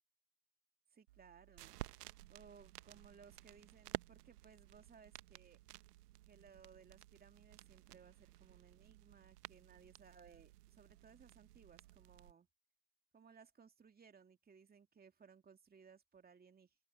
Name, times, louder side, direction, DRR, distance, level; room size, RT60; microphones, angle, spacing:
voice 1, 0.9-1.7 2.3-5.6 6.3-12.5 13.1-16.8, right 6 dB, 20° right, 2.5 m, -63 dB
sound 1, 1.1-12.3, right 16 dB, 70° right, 1.2 m, -54 dB
open air
figure-of-eight pair, 80°, 49 cm